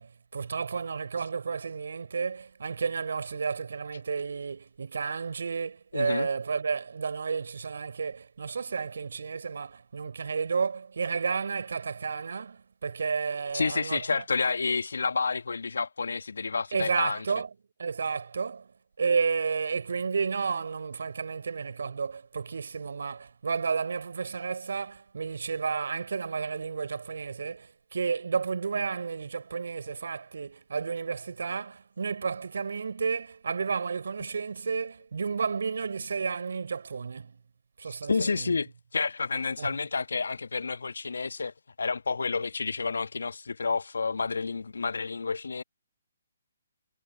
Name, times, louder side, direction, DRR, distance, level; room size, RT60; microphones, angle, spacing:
voice 1, 0.0-14.2 16.7-17.5 17.8-18.7 19.0-37.4 37.8-38.5 39.6-39.7, right 5 dB, 65° right, 4.2 m, -32 dB
voice 2, 5.9-6.3 13.5-17.2 37.9-45.6, left 4 dB, 70° left, 1.4 m, -30 dB
figure-of-eight pair, 135°, 0 cm